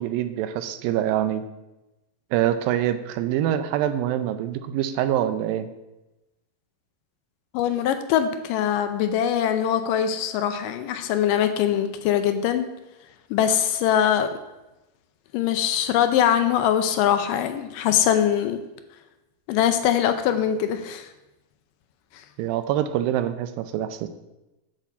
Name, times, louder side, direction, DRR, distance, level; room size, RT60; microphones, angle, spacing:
voice 1, 0.0-1.4 2.3-5.7 22.4-24.1, right 11 dB, 80° right, 10 dB, 2.3 m, -25 dB
voice 2, 7.5-12.7 13.3-14.3 15.3-18.6 19.5-21.1, left 9 dB, 80° left, 9 dB, 2.1 m, -22 dB
9.1 x 4.7 x 7.2 m, 0.99 s
omnidirectional pair, 4.3 m